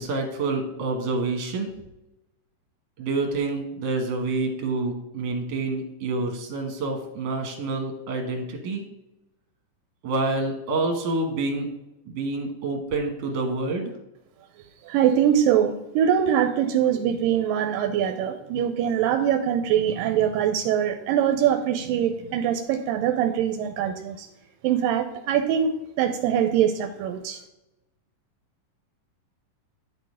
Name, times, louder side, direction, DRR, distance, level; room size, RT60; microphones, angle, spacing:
voice 1, 0.0-1.7 3.0-8.8 10.0-11.7 12.1-13.9, right 3 dB, 60° right, 2 dB, 2.3 m, -27 dB
voice 2, 14.8-24.3 24.6-27.4, right 9 dB, 85° right, 6 dB, 2.2 m, -23 dB
10.5 x 3.9 x 4.9 m, 0.93 s
omnidirectional pair, 4.0 m